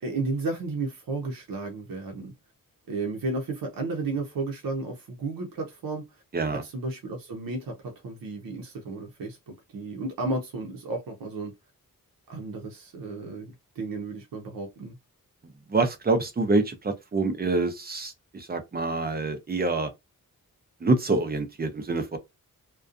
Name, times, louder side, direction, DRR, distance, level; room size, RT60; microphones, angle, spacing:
voice 1, 0.0-2.3 2.9-6.2 6.5-11.5 12.3-15.0, right 3 dB, 75° right, 0.6 m, -33 dB
voice 2, 15.7-19.9 20.8-22.2, right 3 dB, 25° right, 0.5 m, -26 dB
2.5 x 2.2 x 2.4 m
wide cardioid pair, 130°, 35 cm